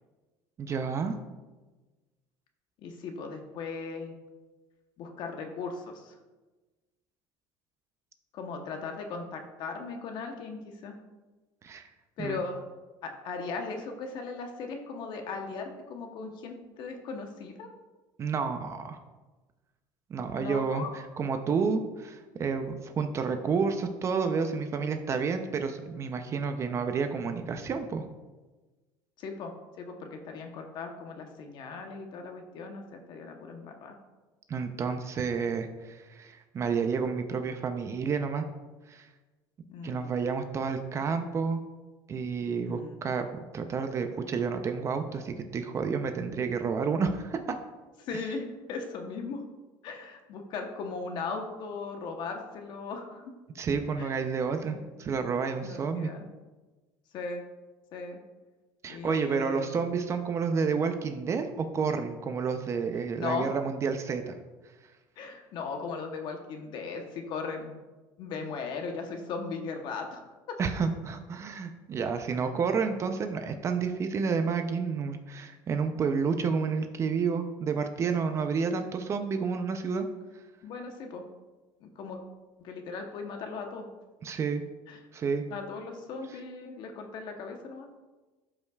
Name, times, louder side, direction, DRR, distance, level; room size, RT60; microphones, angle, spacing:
voice 1, 0.6-1.2 11.6-11.9 12.2-12.4 18.2-19.0 20.1-28.1 34.5-38.4 38.9-39.1 39.8-41.6 42.1-47.4 53.5-56.1 58.8-64.4 70.6-80.1 84.2-84.6 85.1-85.4, right 5 dB, 30° right, 7 dB, 0.5 m, -30 dB
voice 2, 2.8-4.2 5.0-6.1 8.3-10.9 12.2-12.6 13.0-17.7 20.4-20.9 29.2-29.5 29.8-34.0 39.7-40.1 42.6-43.0 48.0-49.4 49.8-53.2 54.0-54.1 55.6-56.3 57.1-57.4 57.9-58.2 58.9-59.7 63.2-63.6 65.2-67.7 68.2-70.6 72.3-72.4 80.6-81.2 81.8-82.2 82.6-83.9 84.9-85.0 85.5-87.9, left 4 dB, 55° left, 4 dB, 0.9 m, -38 dB
12.5 x 5.5 x 2.3 m, 1.2 s
cardioid pair, 130°, 9 cm